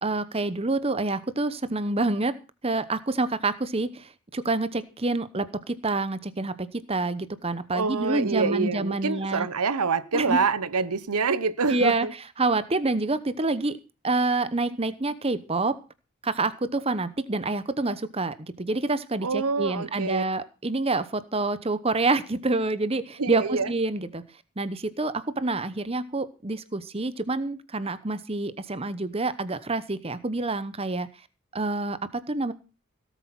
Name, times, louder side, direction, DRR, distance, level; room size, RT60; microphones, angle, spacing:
voice 1, 0.0-2.3 2.6-9.5 10.1-10.4 11.7-12.1 12.4-13.8 14.0-15.8 16.2-24.2 24.6-31.1 31.5-32.5, right 2 dB, 25° right, 0.9 m, -27 dB
voice 2, 7.7-12.1 19.2-20.2 23.2-23.7, right 4 dB, 85° right, 0.9 m, -26 dB
17.5 x 8.3 x 6.0 m
head